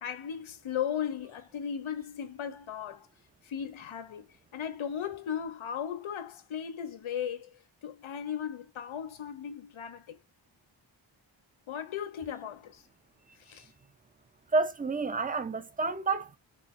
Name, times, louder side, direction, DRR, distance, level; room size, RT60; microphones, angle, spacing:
voice 1, 0.0-3.1 3.5-4.3 4.5-7.5 7.8-10.2 11.7-12.8 13.5-13.7, left 8 dB, 90° left, 0.7 m, -36 dB
voice 2, 14.5-16.4, right 3 dB, 20° right, 0.5 m, -29 dB
4.0 x 2.1 x 3.5 m
wide cardioid pair, 80°, 46 cm